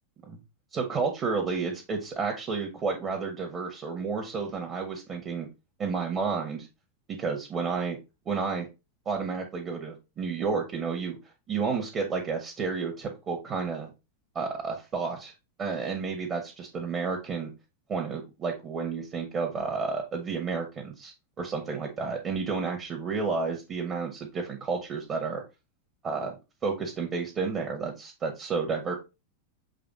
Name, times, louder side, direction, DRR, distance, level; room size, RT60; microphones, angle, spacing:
voice 1, 0.7-5.5 5.8-6.7 7.1-8.0 8.2-8.7 9.0-11.2 11.5-13.9 14.3-15.3 15.6-17.5 17.9-25.4 26.0-26.3 26.6-28.9, right 5 dB, 25° right, 1 dB, 1.4 m, -31 dB
6.8 x 3.6 x 3.9 m, 0.26 s
figure-of-eight pair, 90°, 0 cm